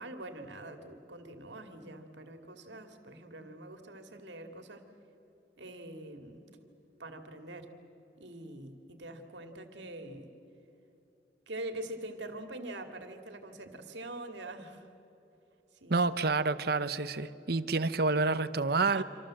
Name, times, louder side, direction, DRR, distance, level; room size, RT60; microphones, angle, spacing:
voice 1, 0.0-4.9 5.6-6.4 7.0-7.7 8.2-10.3 11.5-14.9 15.8-16.0 18.8-19.0, right 1 dB, 75° right, 6 dB, 2.5 m, -44 dB
voice 2, 15.9-19.0, right 3 dB, 55° right, 13 dB, 0.9 m, -28 dB
27.0 x 26.5 x 7.7 m, 2.9 s
head